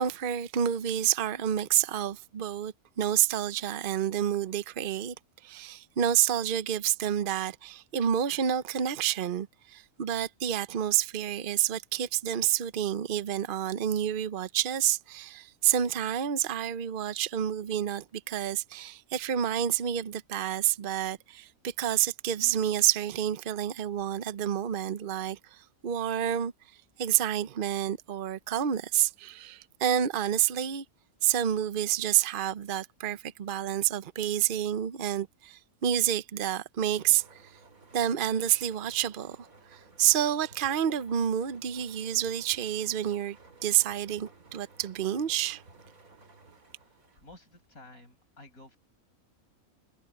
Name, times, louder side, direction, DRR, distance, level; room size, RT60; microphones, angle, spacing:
voice 1, 0.0-5.1 5.4-26.5 27.0-30.8 31.2-37.4 37.9-43.4 43.6-45.6, right 10 dB, 45° right, 0.8 m, -29 dB
sound 1, 36.9-47.7, right 3 dB, 75° right, 3.4 m, -56 dB
voice 2, 46.7-48.8, left 2 dB, 75° left, 7.4 m, -53 dB
omnidirectional pair, 1.5 m